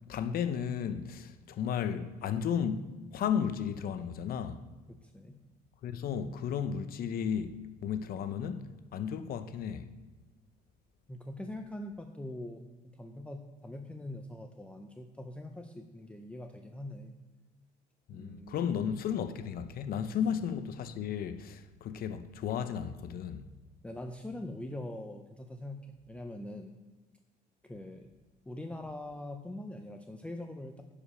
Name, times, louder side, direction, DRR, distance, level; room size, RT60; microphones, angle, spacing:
voice 1, 0.1-4.6 5.8-7.5 7.8-9.8 18.1-23.5, left 8 dB, 60° left, 0.8 m, -34 dB
voice 2, 4.9-5.4 11.1-12.7 13.0-17.2 18.1-18.8 23.8-25.8 26.1-26.8 27.6-28.1 28.5-30.8, left 1 dB, 5° left, 0.6 m, -43 dB
9.7 x 5.1 x 5.6 m
cardioid pair, 110°, 17 cm